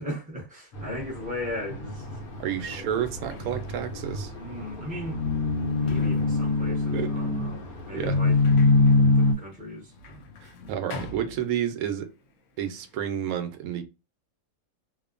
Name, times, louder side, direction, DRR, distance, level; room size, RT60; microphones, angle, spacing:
voice 1, 0.0-2.2 4.4-5.2 5.7-8.3 9.1-10.3, left 1 dB, 5° right, 0.8 m, -37 dB
sound 1, 0.7-9.3, left 3 dB, 85° left, 1.2 m, -25 dB
Sliding door, 2.1-2.2 2.8-12.0 12.3-13.1, left 2 dB, 65° left, 0.9 m, -44 dB
voice 2, 2.4-4.3 6.9-7.1 7.9-8.2 10.4-12.1 12.6-13.8, right 9 dB, 85° right, 1.0 m, -30 dB
2.9 x 2.1 x 2.4 m
omnidirectional pair, 1.5 m